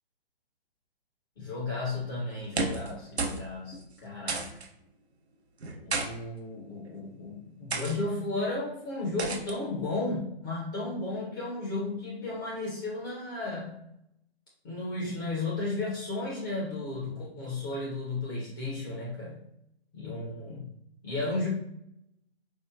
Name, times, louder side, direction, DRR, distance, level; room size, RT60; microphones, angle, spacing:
voice 1, 1.4-4.5 5.8-13.8 14.6-19.4 19.9-20.7 21.0-21.5, left 2 dB, 20° left, -5 dB, 0.5 m, -34 dB
sound 1, 2.4-2.9 3.2-3.4 3.7-3.8 4.3-4.7 5.6-6.1 6.8-7.1 7.7-8.0 9.2-9.5, right 3 dB, 85° right, 0.6 m, -32 dB
4.4 x 2.1 x 2.3 m, 0.79 s
figure-of-eight pair, 135°, 31 cm